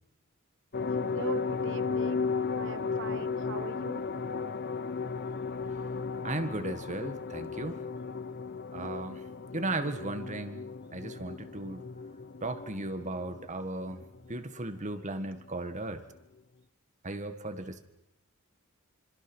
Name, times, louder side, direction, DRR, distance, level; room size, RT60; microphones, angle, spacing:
sound 1, 0.7-14.9 15.2-15.3 15.6-15.7, left 5 dB, 50° left, 0.9 m, -35 dB
voice 1, 1.0-4.0, right 3 dB, 60° right, 14 dB, 1.0 m, -41 dB
voice 2, 6.2-7.8 8.7-9.2 9.5-10.6 10.9-11.8 12.4-14.0 14.3-16.0 17.0-17.8, right 2 dB, 35° right, 9 dB, 1.7 m, -36 dB
26.0 x 26.0 x 6.3 m, 0.83 s
head